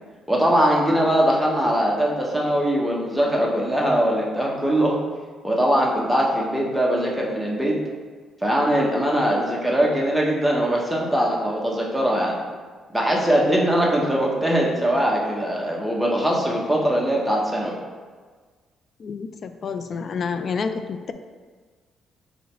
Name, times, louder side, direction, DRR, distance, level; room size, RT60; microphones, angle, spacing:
voice 1, 0.3-5.0 5.4-7.8 8.4-12.4 12.9-17.8, equal, ahead, -3 dB, 1.0 m, -21 dB
voice 2, 19.0-21.1, left 5 dB, 50° left, 9 dB, 0.3 m, -29 dB
3.9 x 3.1 x 4.4 m, 1.5 s
cardioid pair, 90°, 0 cm